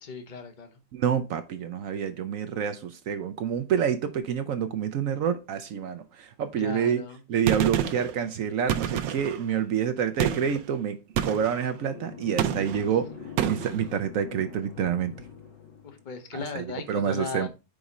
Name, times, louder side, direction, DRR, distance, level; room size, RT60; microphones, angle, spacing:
voice 1, 0.0-0.8 6.6-7.2 15.8-17.5, left 5 dB, 40° left, 0.7 m, -37 dB
voice 2, 0.9-7.0 7.3-11.0 11.2-15.1 16.5-16.6 16.9-17.5, right 8 dB, 70° right, 0.8 m, -28 dB
Gunshot gunfire, 7.5-8.1 8.7-9.4 10.2-10.6 11.2-11.6 12.4-12.9 13.4-13.8, right 10 dB, 90° right, 1.3 m, -28 dB
sound 1, 11.1-16.0, left 7 dB, 85° left, 1.7 m, -43 dB
5.1 x 4.9 x 4.1 m
omnidirectional pair, 1.9 m